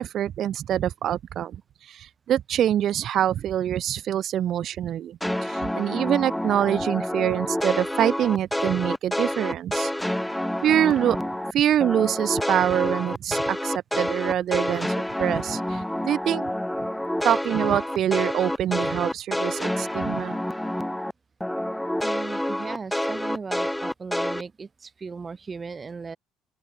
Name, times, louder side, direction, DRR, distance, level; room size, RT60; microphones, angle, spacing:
voice 1, 0.0-1.6 1.8-10.1 10.6-11.2 11.5-16.5 17.2-20.4, right 11 dB, 55° right, 0.3 m, -25 dB
sound 1, 5.2-11.5 11.8-21.1 21.4-24.4, left 1 dB, 5° left, 1.0 m, -28 dB
voice 2, 22.0-26.2, right 4 dB, 30° right, 1.6 m, -37 dB
open air
figure-of-eight pair, 55°, 0 cm